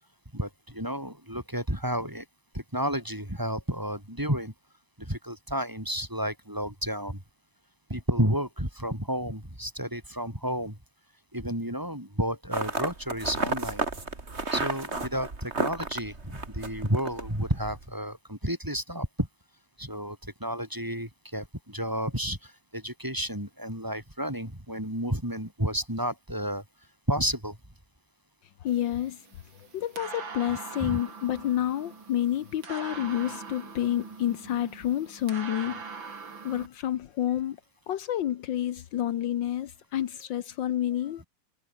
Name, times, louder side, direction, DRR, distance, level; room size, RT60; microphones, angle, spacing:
voice 1, 0.3-2.2 2.5-4.5 5.0-7.2 7.9-10.8 11.3-13.8 14.5-19.3 19.8-26.6 27.1-27.6 30.8-31.0, equal, 10° right, 5.3 m, -31 dB
sound 1, 12.5-17.8, right 3 dB, 35° right, 3.1 m, -33 dB
voice 2, 28.6-29.2 29.7-35.8 36.4-37.6 37.9-41.2, left 11 dB, 75° left, 1.6 m, -29 dB
sound 2, 28.7-36.7, right 5 dB, 80° right, 3.8 m, -42 dB
omnidirectional pair, 2.1 m